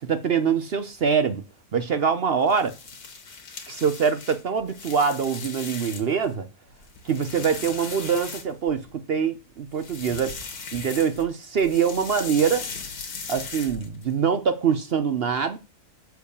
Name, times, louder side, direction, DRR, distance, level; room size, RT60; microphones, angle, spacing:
voice 1, 0.0-1.4 1.7-2.8 3.7-6.5 7.0-10.4 10.7-12.6 13.3-15.6, right 6 dB, 55° right, 0.7 m, -24 dB
sound 1, 2.4-6.3 6.7-8.9 9.7-11.3 11.6-14.1, left 5 dB, 85° left, 2.1 m, -38 dB
6.9 x 4.7 x 6.7 m
omnidirectional pair, 1.6 m